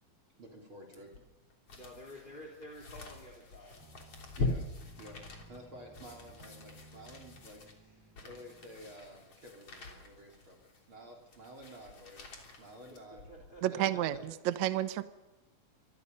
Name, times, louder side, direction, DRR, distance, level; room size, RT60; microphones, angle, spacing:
voice 1, 0.4-1.1 4.2-4.7 5.0-13.3 13.6-14.2, equal, 35° right, 3 dB, 4.1 m, -52 dB
sound 1, 0.9-13.6 14.1-14.2, left 3 dB, 40° left, 4.1 m, -43 dB
voice 2, 1.8-3.8 13.3-13.8 14.2-14.3, equal, 15° left, -1 dB, 3.4 m, -50 dB
sound 2, 3.8-8.9, right 1 dB, 5° right, 2.9 m, -58 dB
voice 3, 13.6-15.0, right 13 dB, 75° right, 11 dB, 1.7 m, -31 dB
26.5 x 20.5 x 5.5 m, 1.0 s
omnidirectional pair, 4.3 m